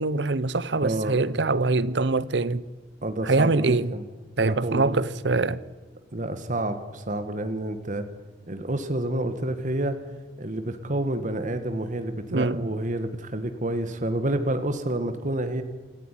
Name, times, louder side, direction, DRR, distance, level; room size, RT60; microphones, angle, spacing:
voice 1, 0.0-2.6 3.2-3.9 4.4-5.6 12.3-12.7, right 3 dB, 75° right, 0.9 m, -24 dB
voice 2, 0.8-1.2 3.0-4.0 4.4-5.0 6.1-8.1 8.5-10.0 10.4-15.6, right 1 dB, 45° right, 1.6 m, -29 dB
27.0 x 14.5 x 10.0 m
head